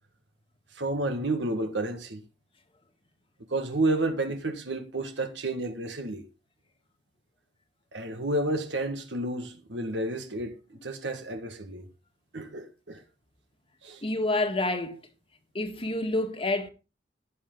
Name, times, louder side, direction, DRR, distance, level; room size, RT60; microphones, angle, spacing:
voice 1, 0.7-2.2 3.5-6.2 7.9-10.5 10.8-11.8 12.3-13.0 13.8-14.0, right 2 dB, 75° right, 1.7 m, -30 dB
voice 2, 14.0-15.0 15.5-16.7, left 2 dB, 30° left, 1.7 m, -28 dB
14.5 x 9.2 x 3.8 m
head